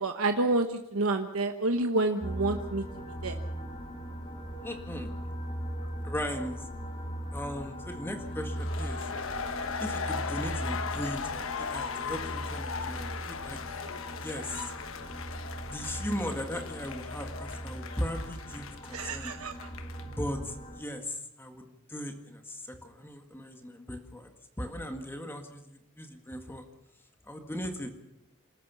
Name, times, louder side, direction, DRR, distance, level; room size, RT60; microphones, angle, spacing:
voice 1, 0.0-2.8 3.2-3.3 18.9-19.5, right 2 dB, 85° right, 6 dB, 1.1 m, -28 dB
sound 1, 2.2-20.8, equal, 25° left, 2.0 m, -39 dB
voice 2, 4.6-5.1 6.0-6.7 7.3-9.0 9.8-13.6 14.1-14.7 15.6-19.4 20.0-24.3 24.6-26.7 27.3-27.9, equal, 10° left, 5 dB, 1.8 m, -38 dB
sound 2, 8.5-20.2, left 5 dB, 70° left, 1.2 m, -38 dB
26.5 x 14.0 x 7.1 m, 0.85 s
head